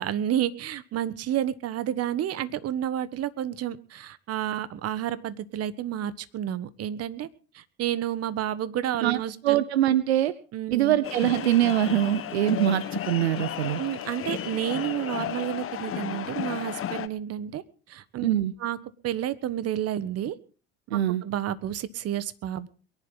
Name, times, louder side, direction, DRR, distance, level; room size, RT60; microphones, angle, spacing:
voice 1, 0.0-7.3 7.5-9.6 10.5-11.0 13.8-17.6 17.9-18.3 18.6-18.8 19.0-20.3 20.9-22.7, right 11 dB, 50° right, 15 dB, 1.4 m, -30 dB
voice 2, 9.0-10.3 10.7-13.8 18.2-18.5 20.9-21.2, right 12 dB, 85° right, 16 dB, 0.8 m, -23 dB
sound 1, 11.0-17.1, left 10 dB, 45° left, 1.5 m, -33 dB
23.0 x 11.0 x 4.0 m, 0.37 s
hypercardioid pair, 70°, 31 cm